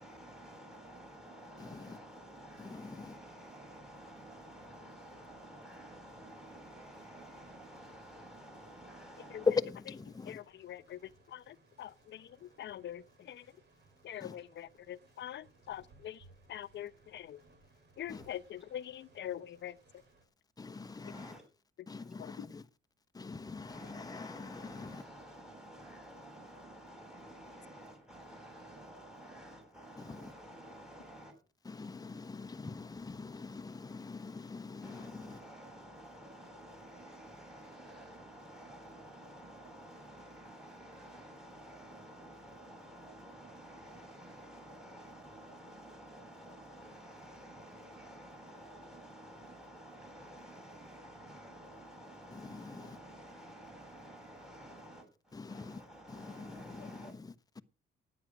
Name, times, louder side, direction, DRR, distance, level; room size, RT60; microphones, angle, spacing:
voice 1, 0.0-9.5 14.3-14.4 18.1-18.3 20.8-21.4 21.9-22.1 23.3-31.3 31.6-57.1, right 1 dB, 5° right, 7.7 m, -52 dB
voice 2, 1.6-2.0 2.6-3.1 9.4-10.4 14.2-14.3 18.1-18.3 20.6-21.4 21.9-22.7 23.1-25.0 30.0-30.3 31.6-35.4 52.3-53.0 55.3-55.8 56.1-57.6, left 4 dB, 20° left, 1.1 m, -41 dB
sound 1, 2.4-20.2, right 2 dB, 55° right, 5.4 m, -65 dB
voice 3, 10.2-13.5 14.0-17.4 18.0-20.0 22.2-22.5, left 11 dB, 65° left, 0.9 m, -44 dB
13.0 x 9.7 x 6.2 m
cardioid pair, 90°, 20 cm